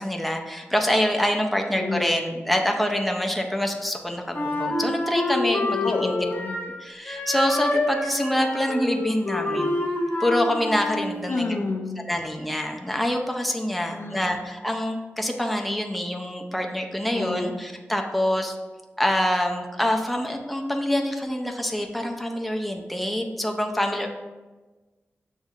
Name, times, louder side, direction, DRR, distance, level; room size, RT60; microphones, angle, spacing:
voice 1, 0.0-6.2 6.8-9.7 10.2-11.5 12.0-18.5 19.0-24.1, left 1 dB, ahead, 2 dB, 0.5 m, -26 dB
voice 2, 1.7-2.2 5.8-6.6 11.3-12.2 13.9-14.4 17.1-17.7, left 3 dB, 60° left, 3 dB, 0.5 m, -30 dB
Wind instrument woodwind instrument, 4.3-6.8 7.1-11.1, left 2 dB, 45° left, 1.0 m, -27 dB
7.1 x 2.7 x 2.4 m, 1.2 s
cardioid pair, 65°, 5 cm